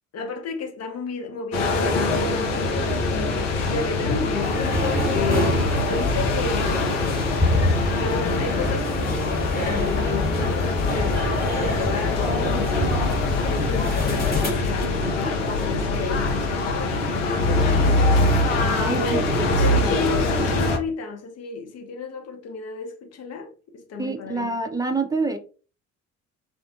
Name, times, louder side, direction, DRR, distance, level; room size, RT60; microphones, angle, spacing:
voice 1, 0.1-2.7 3.6-7.0 8.0-11.2 11.6-13.1 13.5-18.0 18.7-19.3 19.6-24.5, left 4 dB, 40° left, 0.8 m, -32 dB
sound 1, 1.5-20.8, left 2 dB, 75° left, 0.6 m, -24 dB
sound 2, 4.4-14.5, left 2 dB, 25° left, 1.2 m, -26 dB
voice 2, 18.6-19.3 19.8-20.0 24.0-25.4, right 3 dB, 10° right, 0.6 m, -27 dB
2.5 x 2.0 x 2.5 m
figure-of-eight pair, 50°, 37 cm